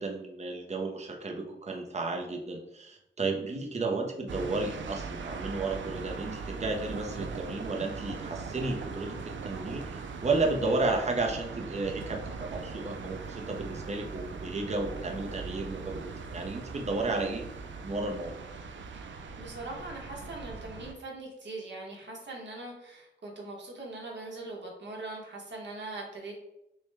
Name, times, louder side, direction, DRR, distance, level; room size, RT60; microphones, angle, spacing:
voice 1, 0.0-17.4 17.8-18.3, right 3 dB, 35° right, 1 dB, 0.7 m, -33 dB
sound 1, 4.3-20.9, right 5 dB, 90° right, 0.4 m, -40 dB
voice 2, 18.9-26.5, right 2 dB, 75° right, -2 dB, 1.3 m, -41 dB
6.1 x 2.2 x 3.4 m, 0.85 s
wide cardioid pair, 115°, 19 cm